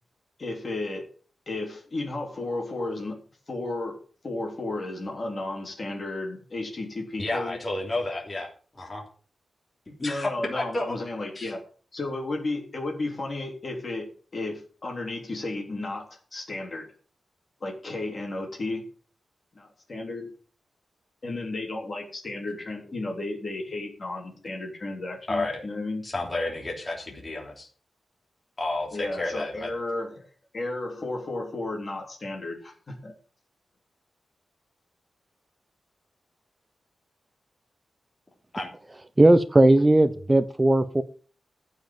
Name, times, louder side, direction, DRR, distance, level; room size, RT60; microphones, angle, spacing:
voice 1, 0.4-1.0 1.5-3.2 3.5-4.0 4.2-7.6 10.0-11.6 11.9-14.1 14.3-16.9 17.6-18.8 19.6-20.3 21.2-26.0 28.9-33.1, left 2 dB, 40° left, 0 dB, 3.6 m, -33 dB
voice 2, 7.2-9.0 10.0-11.0 11.3-11.5 25.3-25.6 26.0-27.7 28.6-29.7 38.5-38.7, left 2 dB, 25° left, -1 dB, 3.2 m, -31 dB
voice 3, 39.2-41.0, right 1 dB, 15° right, 10 dB, 0.8 m, -18 dB
14.5 x 5.5 x 7.6 m, 0.41 s
wide cardioid pair, 130°, 0 cm